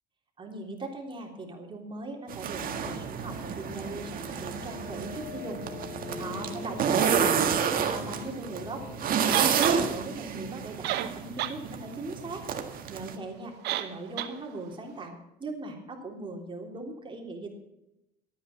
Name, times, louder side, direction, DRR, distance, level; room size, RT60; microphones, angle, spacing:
voice 1, 0.4-5.6 6.2-7.5 7.8-8.8 9.2-12.4 12.9-13.5 13.8-17.5, right 2 dB, 30° right, 1 dB, 3.4 m, -39 dB
sound 1, 2.3-13.2, right 7 dB, 55° right, 1.7 m, -30 dB
sound 2, 2.7-9.6, left 4 dB, 85° left, 3.3 m, -43 dB
sound 3, 9.3-9.8 10.6-10.7 10.8-11.6 11.9-12.0 13.6-13.9 14.2-14.3, right 14 dB, 90° right, 1.0 m, -30 dB
13.5 x 9.2 x 7.2 m, 0.89 s
cardioid pair, 110°, 17 cm